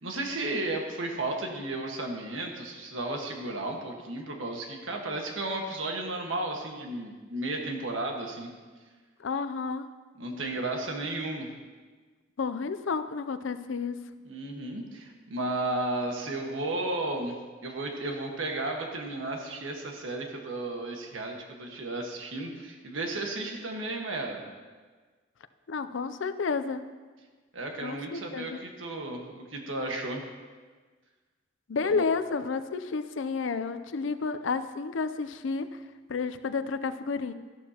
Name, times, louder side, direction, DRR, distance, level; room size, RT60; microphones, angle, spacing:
voice 1, 0.0-8.5 10.2-11.5 14.2-24.4 27.5-30.2 31.8-32.1, right 2 dB, 90° right, 2 dB, 1.5 m, -34 dB
voice 2, 9.2-9.9 12.4-14.0 25.7-26.8 27.8-28.6 31.7-35.7 36.1-37.3, left 4 dB, 75° left, 11 dB, 0.5 m, -31 dB
13.5 x 11.5 x 2.9 m, 1.4 s
head